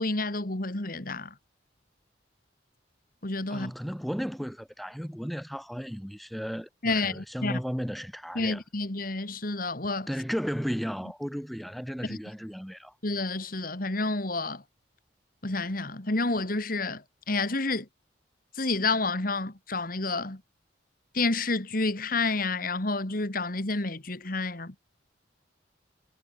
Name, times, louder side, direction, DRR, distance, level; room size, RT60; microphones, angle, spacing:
voice 1, 0.0-1.3 3.2-3.7 6.8-7.6 8.4-10.1 12.1-12.2 13.0-14.6 15.4-17.9 18.6-20.4 21.1-24.7, left 3 dB, 50° left, 2.1 m, -29 dB
voice 2, 3.5-8.6 10.1-12.9, equal, ahead, 7.0 m, -34 dB
head